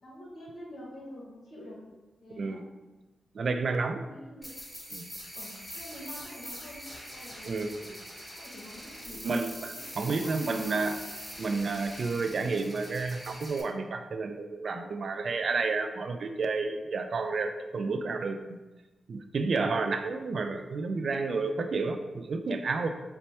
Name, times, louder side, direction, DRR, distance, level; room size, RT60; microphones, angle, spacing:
voice 1, 0.0-1.8 2.2-2.8 3.9-4.5 5.3-7.9 8.3-10.9, left 1 dB, 70° left, -4 dB, 1.4 m, -47 dB
voice 2, 3.3-4.0 4.9-5.1 7.5-7.7 9.2-9.5 10.0-10.9 11.4-18.6 19.1-22.9, right 4 dB, 60° right, 7 dB, 0.3 m, -30 dB
sound 1, 4.4-13.6, equal, 10° left, 1.1 m, -43 dB
4.1 x 2.2 x 4.2 m, 1.2 s
wide cardioid pair, 105°, 0 cm